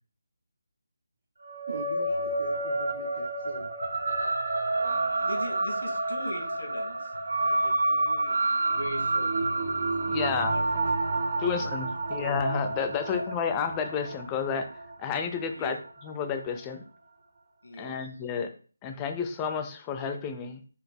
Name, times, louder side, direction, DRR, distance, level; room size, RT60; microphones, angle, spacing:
sound 1, 1.4-16.1, right 2 dB, 70° right, 0.8 m, -29 dB
voice 1, 1.7-3.7, right 2 dB, 40° right, 1 dB, 0.6 m, -41 dB
voice 2, 5.0-7.1 7.4-8.4 8.6-9.3 10.2-10.8 11.6-11.7 12.1-12.3 13.1-13.2 15.5-15.8 17.6-17.9, equal, 90° left, 4 dB, 1.2 m, -40 dB
voice 3, 10.1-10.5 11.4-14.7 15.0-15.8 16.0-16.8 17.8-18.5 18.8-20.6, left 6 dB, 15° left, 7 dB, 0.3 m, -31 dB
4.1 x 2.2 x 3.4 m, 0.39 s
figure-of-eight pair, 165°, 0 cm